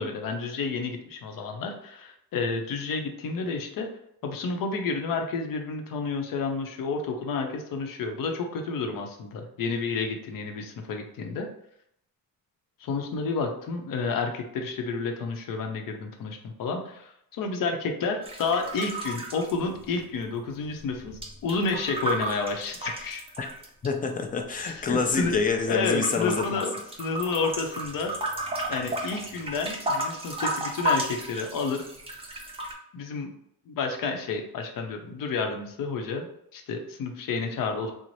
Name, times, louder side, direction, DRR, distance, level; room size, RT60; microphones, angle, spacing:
voice 1, 0.0-3.9 4.2-11.5 12.8-23.2 24.6-25.3 25.7-28.1 28.7-31.8 32.9-33.3 33.7-36.3 36.5-37.9, left 4 dB, 65° left, 4 dB, 0.7 m, -30 dB
sound 1, 18.2-20.3 20.5-23.9 24.5-25.5 25.8-32.7, right 1 dB, 15° right, 0.6 m, -33 dB
voice 2, 23.8-26.6, left 4 dB, 25° left, 5 dB, 0.4 m, -27 dB
3.1 x 2.0 x 3.9 m, 0.73 s
cardioid pair, 115°, 37 cm